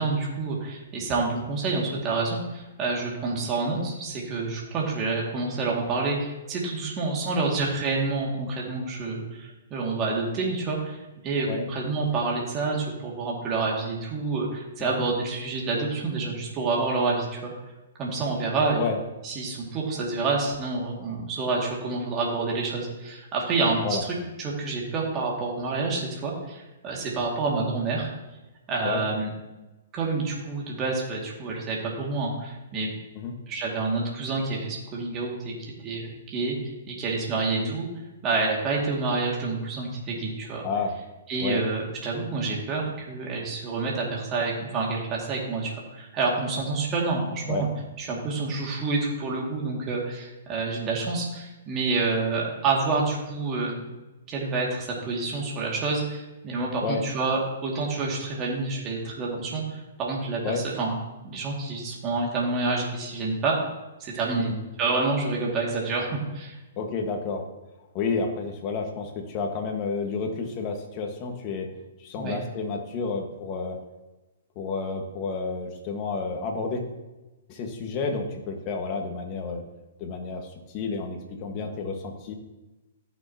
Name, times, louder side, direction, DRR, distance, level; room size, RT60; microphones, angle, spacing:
voice 1, 0.0-17.5 18.0-18.8 19.2-28.1 28.7-29.3 29.9-33.0 33.5-37.9 38.2-40.6 41.3-47.7 48.0-53.8 54.3-60.9 61.2-63.6 64.0-64.5 64.8-66.5 72.2-72.4, right 3 dB, 25° right, -3 dB, 2.2 m, -28 dB
voice 2, 40.6-41.0 41.4-41.6 47.5-47.7 56.8-57.0 60.4-60.6 64.4-64.6 66.8-67.4 67.9-71.7 72.0-73.8 74.5-76.8 77.5-79.6 80.0-82.3, left 4 dB, 35° left, 3 dB, 1.6 m, -30 dB
13.5 x 6.4 x 2.9 m, 1.1 s
hypercardioid pair, 135°, 0 cm